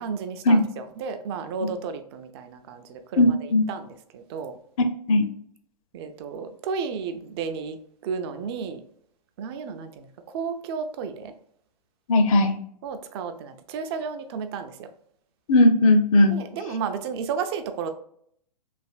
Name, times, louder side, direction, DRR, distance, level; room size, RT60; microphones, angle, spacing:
voice 1, 0.0-4.6 5.9-7.8 8.0-8.8 9.4-10.1 10.3-11.3 12.8-14.9 16.3-17.9, right 6 dB, 40° right, 8 dB, 0.4 m, -33 dB
voice 2, 3.2-3.6 4.8-5.2 12.1-12.6 15.5-16.4, left 2 dB, 55° left, 7 dB, 0.6 m, -18 dB
3.3 x 2.4 x 2.3 m, 0.67 s
hypercardioid pair, 125°, 21 cm